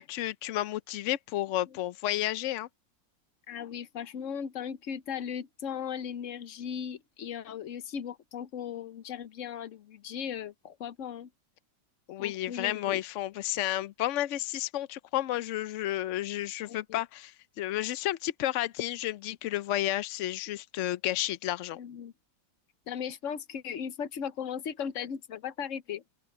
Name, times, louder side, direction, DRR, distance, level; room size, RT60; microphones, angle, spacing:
voice 1, 0.0-2.7 12.1-21.8, left 14 dB, 85° left, 0.6 m, -31 dB
voice 2, 3.5-11.3 12.2-13.0 16.6-17.0 21.7-22.1 22.9-26.0, left 8 dB, 55° left, 1.0 m, -37 dB
open air
omnidirectional pair, 1.9 m